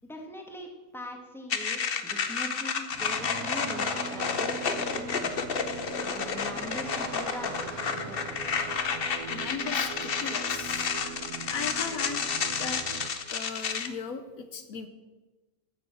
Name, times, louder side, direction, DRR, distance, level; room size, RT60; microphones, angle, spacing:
voice 1, 0.1-5.3 6.0-8.5, equal, ahead, 2 dB, 1.8 m, -42 dB
sound 1, 1.5-13.9, left 6 dB, 45° left, 1.0 m, -31 dB
sound 2, 2.9-13.1, right 5 dB, 75° right, 1.7 m, -42 dB
sound 3, 3.1-8.8, right 5 dB, 60° right, 1.3 m, -45 dB
voice 2, 9.3-10.9 11.5-12.2 12.6-12.8 13.3-14.9, left 6 dB, 70° left, 9 dB, 1.2 m, -37 dB
15.0 x 6.9 x 6.2 m, 1.2 s
omnidirectional pair, 1.6 m